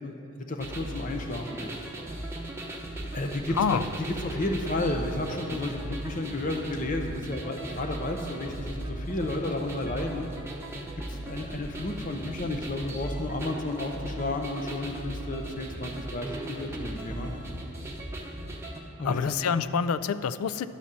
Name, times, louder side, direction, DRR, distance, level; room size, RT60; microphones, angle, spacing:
voice 1, 0.0-1.7 3.1-10.3 11.1-17.3 19.0-19.5, left 2 dB, 35° left, 3 dB, 0.6 m, -32 dB
sound 1, 0.6-18.8, right 1 dB, 10° right, 0.8 m, -37 dB
voice 2, 19.0-20.7, left 6 dB, 75° left, 13 dB, 0.3 m, -27 dB
11.5 x 4.1 x 7.4 m, 2.8 s
head